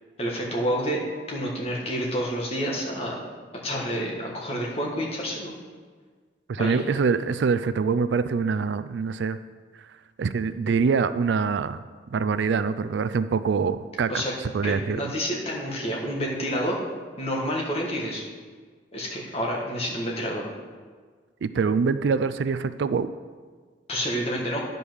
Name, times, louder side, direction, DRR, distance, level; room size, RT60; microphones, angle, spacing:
voice 1, 0.2-1.0 1.3-3.2 3.6-5.6 6.6-6.8 14.1-14.3 14.6-16.8 17.2-18.2 18.9-20.5 23.9-24.6, equal, 30° left, -2 dB, 1.6 m, -29 dB
voice 2, 6.5-9.4 10.2-11.8 12.1-14.2 14.5-15.1 21.4-23.1, right 5 dB, 75° right, 13 dB, 0.4 m, -24 dB
10.0 x 5.3 x 6.2 m, 1.5 s
head